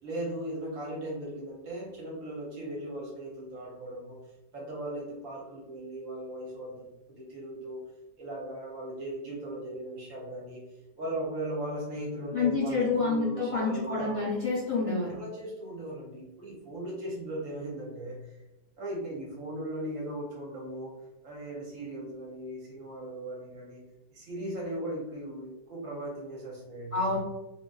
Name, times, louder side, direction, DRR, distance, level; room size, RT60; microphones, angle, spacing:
voice 1, 0.0-4.2 4.5-7.8 8.2-10.6 11.0-14.3 15.1-18.3 18.8-23.8 24.1-27.2, right 1 dB, 60° right, -3 dB, 1.0 m, -38 dB
voice 2, 12.3-15.2 26.9-27.2, left 4 dB, 65° left, -8 dB, 0.3 m, -28 dB
3.0 x 2.5 x 2.3 m, 0.96 s
omnidirectional pair, 1.9 m